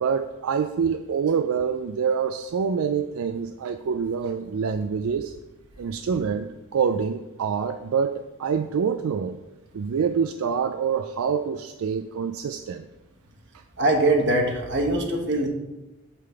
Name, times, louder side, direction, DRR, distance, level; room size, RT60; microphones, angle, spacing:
voice 1, 0.0-5.3 5.8-9.4 9.7-12.9, right 6 dB, 75° right, 8 dB, 0.4 m, -26 dB
voice 2, 13.8-15.5, right 1 dB, 50° right, 2 dB, 1.2 m, -22 dB
8.1 x 3.8 x 6.8 m, 1.1 s
head